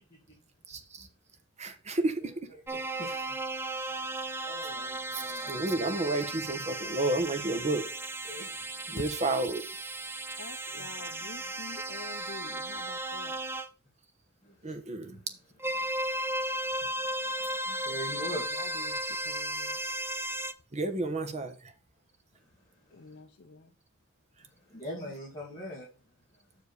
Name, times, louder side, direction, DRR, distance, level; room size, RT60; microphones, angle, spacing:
voice 1, 1.6-2.1 5.5-7.8 8.9-9.6 14.6-15.1 20.7-21.5, right 2 dB, 30° right, 1.1 m, -30 dB
voice 2, 2.2-3.4 3.9-4.0 4.4-5.7 8.2-9.0 10.7-11.6 14.4-18.9 22.4-23.2 24.4-25.9, equal, 20° left, 2.3 m, -45 dB
sound 1, 2.7-13.7 15.6-20.5, right 1 dB, 10° right, 0.5 m, -35 dB
voice 3, 10.4-13.4 17.4-17.5 18.6-19.0 19.3-19.8 22.9-23.7, left 4 dB, 55° left, 0.6 m, -47 dB
6.3 x 5.0 x 6.8 m
head